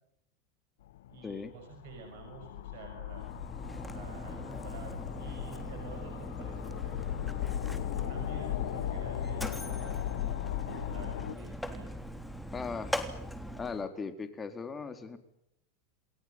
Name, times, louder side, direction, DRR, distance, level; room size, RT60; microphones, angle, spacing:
sound 1, 0.9-11.3, left 13 dB, 80° left, 1.0 m, -37 dB
voice 1, 1.1-3.3 3.9-7.0 7.9-10.1 10.6-11.9, right 6 dB, 70° right, 5 dB, 6.3 m, -49 dB
Mechanisms, 3.1-13.9, equal, 5° left, 3.3 m, -41 dB
voice 2, 12.5-13.0 13.6-15.2, left 5 dB, 20° left, 9 dB, 3.8 m, -38 dB
29.0 x 20.0 x 9.0 m, 0.77 s
hypercardioid pair, 110°, 0 cm